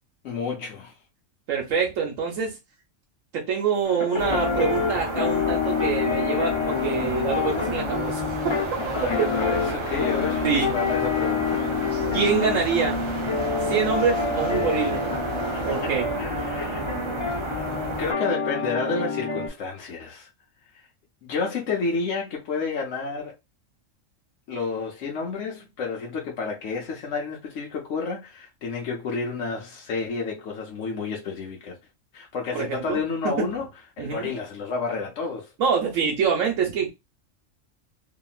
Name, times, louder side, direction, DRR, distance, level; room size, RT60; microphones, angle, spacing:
voice 1, 0.2-1.0 8.9-12.1 15.5-15.9 16.2-16.8 17.6-17.7 18.0-20.3 20.7-20.9 21.2-23.3 24.5-31.8 32.1-33.7 34.0-35.5, left 4 dB, 70° left, 1.0 m, -30 dB
voice 2, 1.5-2.6 3.3-8.2 10.4-10.7 12.1-13.0 13.6-15.0 15.6-16.1 32.5-33.0 33.2-33.5 34.0-34.3 35.6-36.9, right 6 dB, 85° right, 1.1 m, -25 dB
sound 1, 3.8-19.5, left 5 dB, 35° left, 0.5 m, -27 dB
sound 2, 4.2-18.1, right 2 dB, 35° right, 0.4 m, -32 dB
sound 3, 6.7-15.8, right 4 dB, 55° right, 0.9 m, -40 dB
2.8 x 2.4 x 2.3 m
omnidirectional pair, 1.3 m